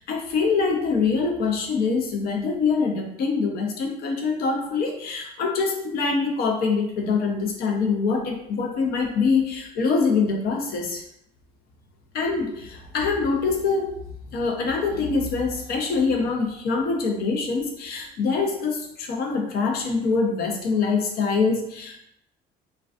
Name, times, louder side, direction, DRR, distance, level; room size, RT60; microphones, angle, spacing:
voice 1, 0.0-11.0 12.1-13.9 14.3-22.0, left 4 dB, 65° left, 2 dB, 0.5 m, -24 dB
2.4 x 2.2 x 2.3 m, 0.74 s
cardioid pair, 110°, 17 cm